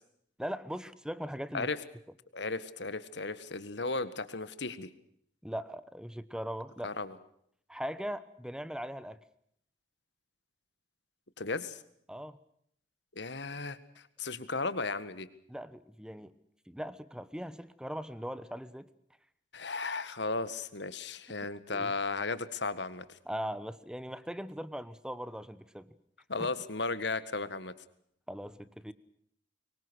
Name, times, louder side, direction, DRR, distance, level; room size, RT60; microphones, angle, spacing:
voice 1, 0.4-1.7 5.4-6.9 7.7-9.2 12.1-12.4 15.5-16.3 16.7-18.9 21.7-21.9 23.3-26.0 26.4-26.5 28.3-28.9, equal, 5° right, 15 dB, 1.1 m, -40 dB
voice 2, 2.3-4.9 6.8-7.2 11.4-11.8 13.1-13.8 14.2-15.3 19.5-23.2 26.3-27.7, left 3 dB, 70° left, 13 dB, 1.8 m, -35 dB
24.5 x 23.5 x 6.4 m, 0.69 s
head